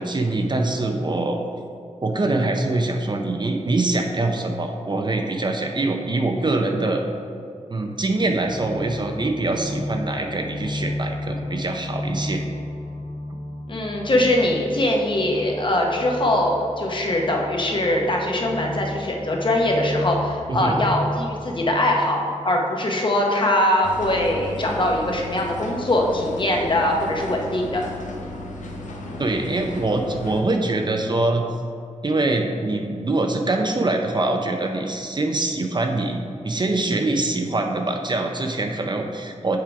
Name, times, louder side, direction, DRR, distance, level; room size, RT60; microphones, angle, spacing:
voice 1, 0.0-1.4 2.0-7.0 7.7-12.4 20.5-20.7 29.2-31.5 32.0-36.2 36.4-39.6, right 2 dB, 35° right, 4 dB, 0.5 m, -24 dB
sound 1, 8.1-22.8, left 1 dB, 65° left, 1.3 m, -33 dB
voice 2, 13.7-27.8, left 1 dB, 40° left, 0 dB, 0.9 m, -22 dB
sound 2, 23.8-30.4, left 1 dB, 80° left, 0.7 m, -34 dB
7.3 x 3.7 x 4.7 m, 2.4 s
wide cardioid pair, 105°, 13 cm